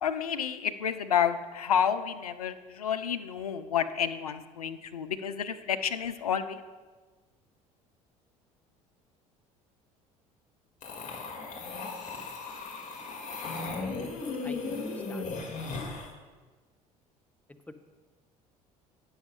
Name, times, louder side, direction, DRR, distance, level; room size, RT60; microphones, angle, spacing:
voice 1, 0.0-6.6, left 8 dB, 80° left, 10 dB, 0.5 m, -30 dB
sound 1, 10.8-16.1, left 3 dB, 40° left, 2.0 m, -36 dB
voice 2, 14.0-15.3 17.7-17.8, left 2 dB, 10° left, 6 dB, 0.8 m, -49 dB
9.1 x 6.3 x 5.3 m, 1.3 s
figure-of-eight pair, 60°, 19 cm